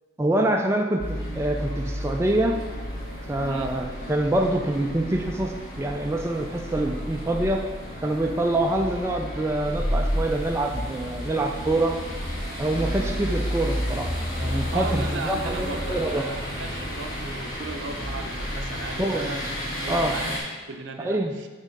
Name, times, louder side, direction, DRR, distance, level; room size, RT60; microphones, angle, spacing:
voice 1, 0.2-2.5 3.3-7.6 8.0-11.9 12.6-14.1 14.4-16.2 19.0-19.3 19.9-20.1 21.0-21.3, right 1 dB, 15° right, 2 dB, 0.3 m, -25 dB
sound 1, 1.0-20.4, equal, 45° left, 1.6 m, -31 dB
voice 2, 3.4-3.7 14.7-21.5, right 3 dB, 65° right, 5 dB, 0.6 m, -36 dB
5.6 x 3.6 x 5.3 m, 1.4 s
head